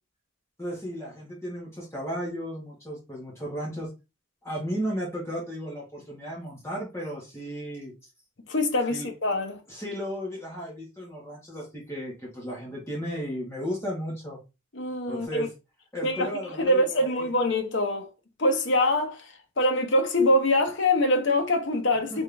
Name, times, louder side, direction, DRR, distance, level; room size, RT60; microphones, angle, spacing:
voice 1, 0.6-3.9 4.4-7.9 8.9-9.1 9.7-14.4 15.1-15.5 15.9-17.3 22.1-22.2, equal, 15° left, 1.5 m, -34 dB
voice 2, 8.5-9.6 14.7-15.5 16.0-16.3 16.6-18.1 18.4-22.2, left 1 dB, 70° left, 0.9 m, -24 dB
3.7 x 3.4 x 3.4 m
head